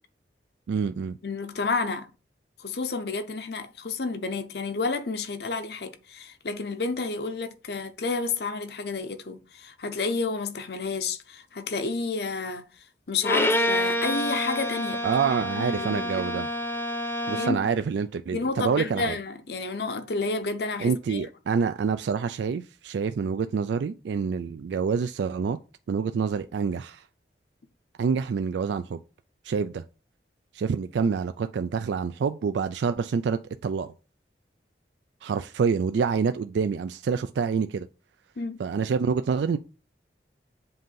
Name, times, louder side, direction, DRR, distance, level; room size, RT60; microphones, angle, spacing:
voice 1, 0.7-1.2 15.0-16.5 17.3-19.2 20.8-25.6 25.9-27.0 28.0-29.0 29.4-29.8 30.5-33.9 35.2-37.9 38.6-39.6, right 6 dB, 85° right, 0.3 m, -27 dB
voice 2, 1.2-2.1 2.6-12.6 13.1-15.0 15.6-16.2 17.4-17.6 18.3-21.2 38.4-38.6, left 4 dB, 65° left, 0.7 m, -30 dB
Bowed string instrument, 13.2-17.7, left 1 dB, 10° left, 0.7 m, -28 dB
7.7 x 2.6 x 5.5 m
head